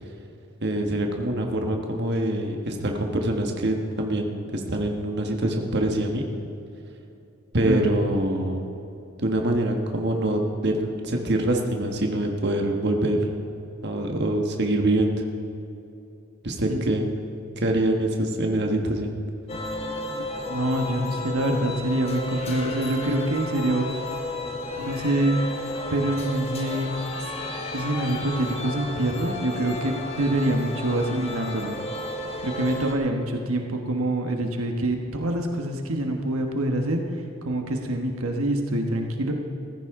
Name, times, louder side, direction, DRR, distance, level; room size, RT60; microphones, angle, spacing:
voice 1, 0.6-6.2 7.5-8.7 9.2-13.2 13.8-15.2 16.4-17.1 17.6-19.2, right 1 dB, 50° right, 2 dB, 1.4 m, -25 dB
voice 2, 7.6-7.9 16.6-16.8 20.5-23.9 24.8-25.4 25.9-26.9 27.7-31.8 32.4-37.0 37.4-39.3, right 1 dB, 85° right, 3 dB, 1.3 m, -25 dB
sound 1, 19.5-32.9, left 2 dB, 30° left, 1.3 m, -33 dB
15.0 x 14.5 x 3.7 m, 2.8 s
head